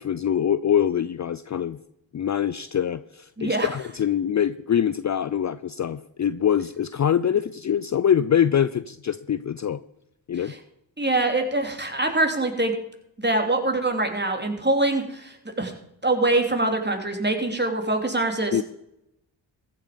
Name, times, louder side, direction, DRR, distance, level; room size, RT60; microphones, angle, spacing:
voice 1, 0.0-1.8 2.1-9.8 10.3-10.5 18.5-18.6, left 9 dB, 35° left, 14 dB, 0.5 m, -24 dB
voice 2, 3.4-3.7 10.5-10.6 11.0-12.7 13.2-15.7 16.0-18.6, right 2 dB, 20° right, 4 dB, 3.1 m, -24 dB
14.5 x 8.7 x 5.2 m, 0.81 s
supercardioid pair, 40°, 48 cm